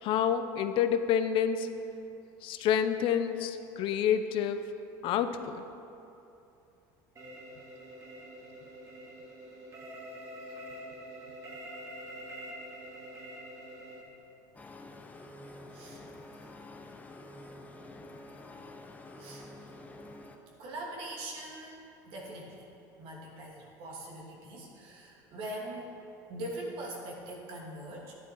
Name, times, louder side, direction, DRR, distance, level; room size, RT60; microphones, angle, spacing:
voice 1, 0.0-1.7 2.4-4.6 5.0-5.6, left 8 dB, 60° left, 9 dB, 0.7 m, -28 dB
sound 1, 7.2-14.0, equal, 30° right, 2.4 m, -45 dB
sound 2, 14.5-20.4, left 2 dB, 15° left, 1.0 m, -48 dB
voice 2, 20.6-21.8 22.1-22.6 23.0-25.9 26.3-28.1, right 1 dB, 65° right, -2 dB, 2.8 m, -42 dB
12.0 x 9.9 x 4.7 m, 2.7 s
supercardioid pair, 95°, 10 cm